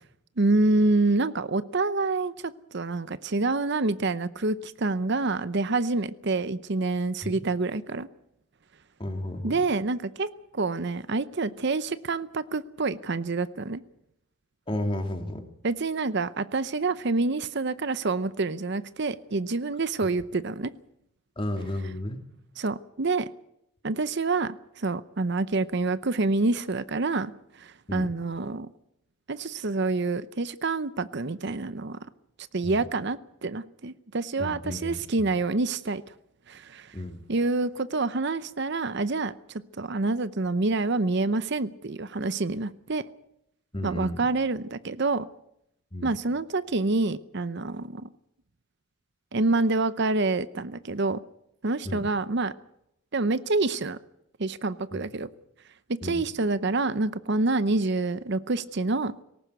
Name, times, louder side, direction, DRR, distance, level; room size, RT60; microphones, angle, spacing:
voice 1, 0.4-8.1 9.4-13.8 15.6-20.7 22.6-23.3 23.8-28.7 29.3-32.0 32.5-36.0 36.5-37.0 37.3-43.0 43.8-45.3 46.0-48.1 49.3-51.2 51.6-52.5 53.1-54.0 54.4-55.3 55.9-59.1, right 3 dB, 55° right, 14 dB, 0.7 m, -27 dB
voice 2, 9.0-9.6 14.7-15.4 21.4-22.2 27.9-28.1 32.6-32.8 34.4-35.3 36.9-37.2 43.7-44.2 45.9-46.1 51.8-52.1 54.9-55.0 56.0-56.2, left 1 dB, 25° left, 6 dB, 2.4 m, -33 dB
19.5 x 18.0 x 8.1 m, 0.78 s
head